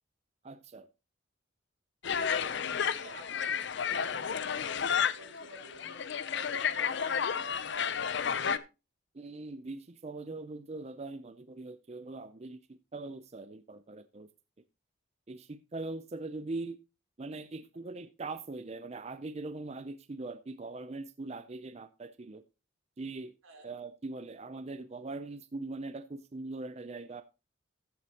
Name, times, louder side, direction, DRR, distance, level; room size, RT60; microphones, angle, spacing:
voice 1, 0.4-0.9 9.1-14.3 15.3-16.8 17.2-22.4 23.0-23.3 23.6-27.2, right 3 dB, 30° right, 0.5 m, -41 dB
sound 1, 2.0-8.6, left 7 dB, 55° left, 0.5 m, -32 dB
voice 2, 2.3-8.4 23.4-23.7, right 2 dB, 90° right, 3.9 m, -52 dB
14.5 x 7.6 x 2.9 m
head